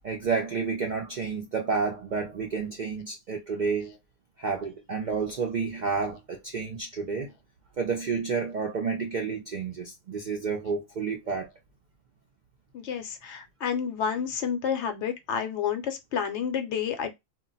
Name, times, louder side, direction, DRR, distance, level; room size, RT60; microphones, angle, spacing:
voice 1, 0.0-4.0 4.4-7.3 7.8-11.5, right 5 dB, 60° right, 0.4 m, -30 dB
voice 2, 12.7-17.1, left 7 dB, 70° left, 0.9 m, -30 dB
2.3 x 2.0 x 3.8 m
omnidirectional pair, 1.3 m